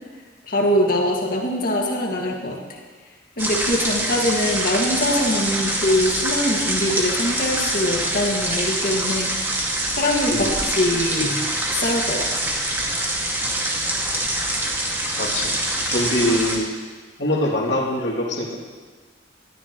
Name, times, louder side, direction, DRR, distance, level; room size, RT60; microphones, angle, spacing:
voice 1, 0.5-2.8 3.4-9.3 9.6-11.4 11.8-12.5, left 1 dB, 50° left, -1 dB, 2.0 m, -23 dB
sound 1, 3.4-16.6, right 1 dB, 15° right, 2.1 m, -24 dB
voice 2, 10.3-10.6 15.2-15.6 15.9-16.7 17.2-18.5, left 1 dB, 70° left, -3 dB, 2.7 m, -23 dB
20.5 x 13.5 x 3.1 m, 1.4 s
head